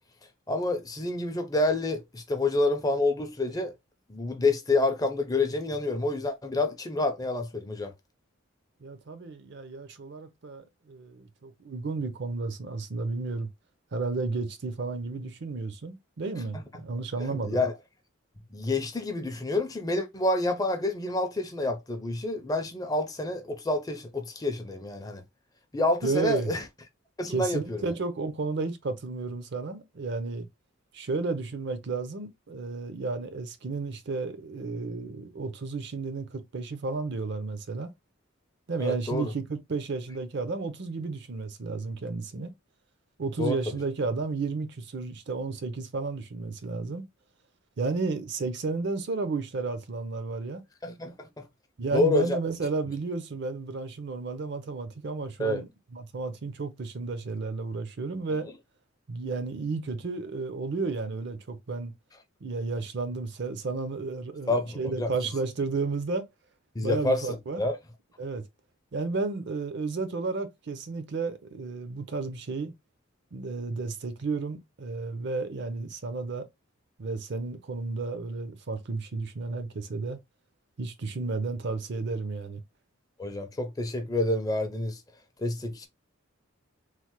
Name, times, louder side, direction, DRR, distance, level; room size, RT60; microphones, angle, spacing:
voice 1, 0.5-3.7 4.1-7.9 16.5-16.6 17.3-17.7 18.5-25.2 25.7-26.6 27.2-27.8 38.8-39.3 43.4-43.6 50.8-51.5 51.9-52.4 55.4-55.6 64.5-65.1 66.8-67.3 67.6-67.8 83.2-85.0 85.4-85.9, left 2 dB, 15° left, 0.4 m, -28 dB
voice 2, 8.8-13.5 13.9-17.6 26.0-26.5 27.3-30.5 30.9-37.9 38.7-42.5 43.2-47.1 47.8-50.6 51.8-58.5 59.1-61.9 62.4-66.3 66.8-67.6 68.2-68.4 68.9-72.7 73.3-76.5 77.0-80.2 80.8-82.6, right 3 dB, 55° right, 0.5 m, -32 dB
3.1 x 2.0 x 2.9 m
head